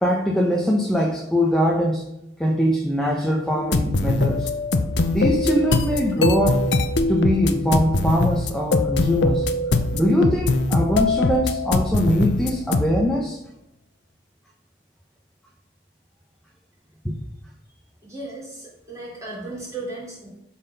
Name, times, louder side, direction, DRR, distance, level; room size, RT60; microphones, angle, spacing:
voice 1, 0.0-2.1 2.4-4.5 5.1-6.7 7.1-9.5 9.9-13.4 17.0-17.1, equal, 5° left, -1 dB, 0.8 m, -22 dB
sound 1, 3.6-12.9, left 2 dB, 80° left, 0.7 m, -22 dB
voice 2, 18.0-20.3, right 2 dB, 15° right, -6 dB, 3.3 m, -35 dB
11.5 x 4.3 x 5.4 m, 0.85 s
head